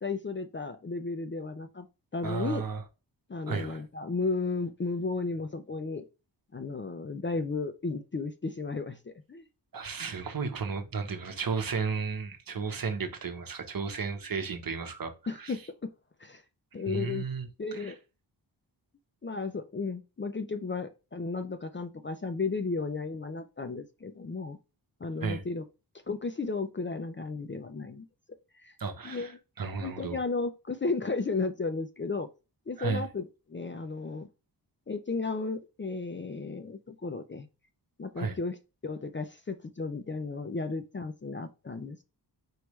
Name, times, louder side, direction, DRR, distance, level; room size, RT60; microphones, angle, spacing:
voice 1, 0.0-1.9 2.1-2.6 3.3-6.0 6.5-9.5 15.3-15.9 16.2-16.4 16.7-17.2 17.6-18.0 19.2-24.6 25.0-25.6 26.1-28.1 28.6-28.7 29.0-29.4 29.8-32.3 32.7-34.3 34.9-37.5 38.0-38.6 38.8-42.0, left 4 dB, 30° left, 0.5 m, -34 dB
voice 2, 2.2-2.8 3.5-3.8 9.7-15.1 15.4-15.5 16.9-17.5 25.2-25.4 28.8-29.3 29.6-30.2 32.8-33.1 38.2-38.4, right 5 dB, 50° right, 1.0 m, -33 dB
4.7 x 3.3 x 3.1 m
wide cardioid pair, 105°, 44 cm